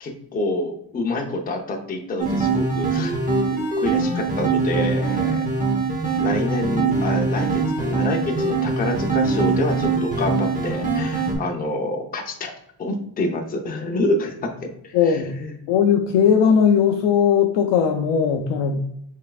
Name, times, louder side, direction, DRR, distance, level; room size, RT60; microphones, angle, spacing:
voice 1, 0.0-3.2 3.5-5.4 6.2-12.5 12.8-14.5 14.8-15.5, left 2 dB, 20° left, 2 dB, 0.6 m, -27 dB
sound 1, 2.2-11.3, right 4 dB, 15° right, 1.0 m, -22 dB
voice 2, 14.9-15.3 15.7-18.8, left 7 dB, 75° left, 3 dB, 0.6 m, -18 dB
5.5 x 3.5 x 2.3 m, 0.76 s
cardioid pair, 160°, 46 cm